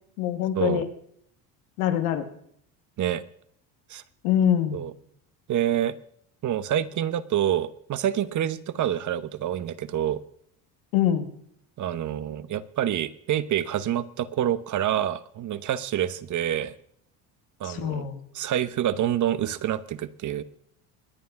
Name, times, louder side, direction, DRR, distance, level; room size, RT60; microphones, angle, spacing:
voice 1, 0.2-0.9 1.8-2.3 4.2-4.8 10.9-11.3 17.6-18.2, left 10 dB, 85° left, 7 dB, 2.2 m, -24 dB
voice 2, 5.5-5.9 6.4-10.2 11.8-16.7 17.6-18.1 18.3-20.4, right 11 dB, 45° right, 15 dB, 1.0 m, -27 dB
21.5 x 9.2 x 5.8 m, 0.67 s
supercardioid pair, 95°, 41 cm